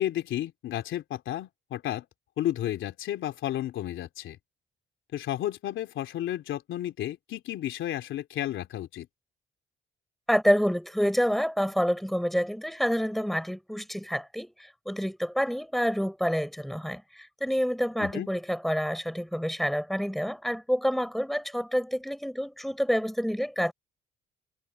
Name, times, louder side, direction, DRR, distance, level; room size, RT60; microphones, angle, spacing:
voice 1, 0.0-2.0 2.4-4.4 5.1-9.1 18.0-18.3, left 12 dB, 80° left, 3.2 m, -32 dB
voice 2, 10.3-14.5 14.9-17.0 17.4-23.7, equal, ahead, 6.9 m, -27 dB
cardioid pair, 90°, 20 cm